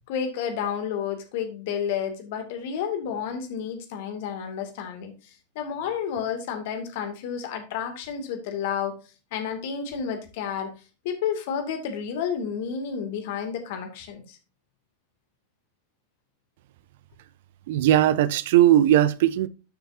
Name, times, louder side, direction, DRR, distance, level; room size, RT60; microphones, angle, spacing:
voice 1, 0.1-5.2 5.5-9.0 9.3-10.7 11.0-14.4, left 7 dB, 50° left, 2.4 m, -31 dB
voice 2, 17.7-19.5, right 12 dB, 55° right, 0.6 m, -19 dB
12.0 x 6.5 x 2.7 m
figure-of-eight pair, 90°, 0 cm